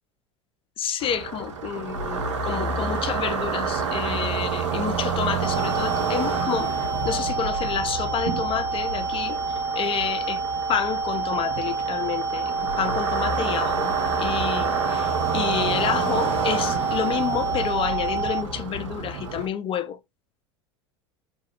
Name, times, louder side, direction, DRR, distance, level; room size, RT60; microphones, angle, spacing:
voice 1, 0.8-6.7 7.0-9.4 9.7-10.4 10.7-20.0, left 8 dB, 35° left, 0.7 m, -29 dB
sound 1, 1.0-19.5, right 5 dB, 80° right, 1.0 m, -29 dB
sound 2, 5.4-18.4, right 4 dB, 15° right, 0.4 m, -28 dB
3.8 x 2.6 x 3.3 m
hypercardioid pair, 80°, 15 cm